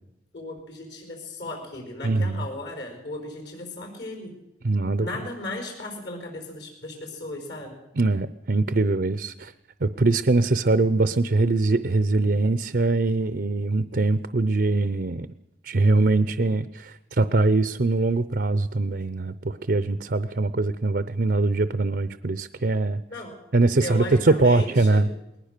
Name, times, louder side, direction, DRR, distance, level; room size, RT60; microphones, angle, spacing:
voice 1, 0.3-4.3 5.0-7.8 23.1-23.3 23.8-25.0, left 2 dB, 65° left, 3 dB, 4.8 m, -36 dB
voice 2, 2.0-2.4 4.6-5.1 8.0-9.5 9.8-15.3 15.6-23.0 23.5-25.1, right 3 dB, 55° right, 13 dB, 0.6 m, -22 dB
20.5 x 19.0 x 6.7 m, 0.91 s
head